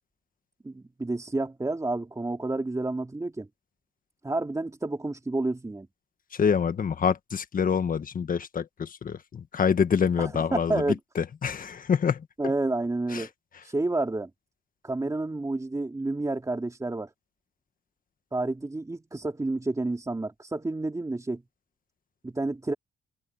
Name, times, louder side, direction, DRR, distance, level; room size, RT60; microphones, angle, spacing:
voice 1, 0.6-3.5 4.2-5.9 10.2-11.0 12.4-13.3 13.6-14.3 14.8-17.1 18.3-21.4 22.2-22.7, right 2 dB, 15° right, 2.9 m, -30 dB
voice 2, 6.3-10.8 11.1-12.2 13.1-13.3, left 6 dB, 45° left, 1.6 m, -26 dB
cardioid pair, 90°, 20 cm